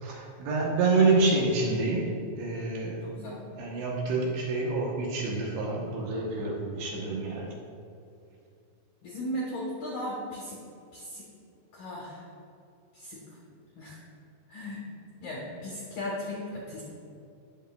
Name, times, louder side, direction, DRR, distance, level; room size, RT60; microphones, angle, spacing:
voice 1, 0.0-2.1 2.4-7.5, right 3 dB, 75° right, -2 dB, 2.8 m, -27 dB
voice 2, 3.0-3.4 9.0-10.6 10.9-11.2 11.7-12.3 12.9-13.2 13.8-14.0 14.5-14.8 15.2-16.8, left 1 dB, 75° left, -5 dB, 2.0 m, -36 dB
17.5 x 6.4 x 2.2 m, 2.6 s
omnidirectional pair, 5.6 m